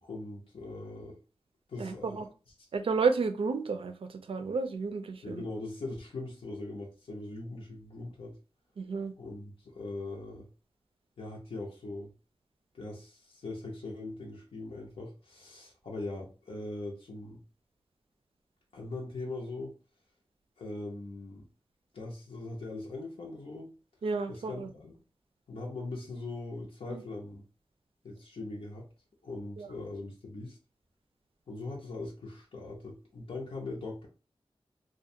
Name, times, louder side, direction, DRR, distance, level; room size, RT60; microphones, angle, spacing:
voice 1, 0.0-1.2 1.7-2.2 5.2-8.4 9.2-10.5 11.2-12.1 12.7-17.4 18.7-19.8 20.6-21.4 21.9-23.7 24.3-25.0 25.5-27.4 28.0-28.9 29.2-30.6 31.5-34.1, left 2 dB, 85° left, -2 dB, 0.6 m, -41 dB
voice 2, 1.8-2.3 2.7-5.4 8.8-9.1 24.0-24.7 26.9-27.0 29.6-29.7, right 4 dB, 75° right, 8 dB, 0.4 m, -31 dB
2.4 x 2.1 x 2.6 m, 0.33 s
wide cardioid pair, 85°, 9 cm